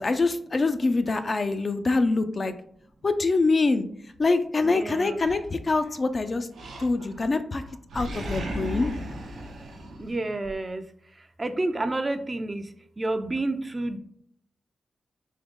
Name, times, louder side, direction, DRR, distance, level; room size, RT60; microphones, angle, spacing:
voice 1, 0.0-2.5 3.0-3.9 4.2-6.5 6.8-7.6 7.9-8.9, left 3 dB, 40° left, 9 dB, 0.4 m, -24 dB
voice 2, 4.6-5.3 10.0-10.8 11.4-12.6 13.0-14.0, right 2 dB, 30° right, 8 dB, 0.4 m, -29 dB
Animal, 5.2-6.0 6.5-7.3 7.6-10.5, equal, 90° right, 0.8 m, -36 dB
3.7 x 3.0 x 3.5 m, 0.65 s
cardioid pair, 65°, 0 cm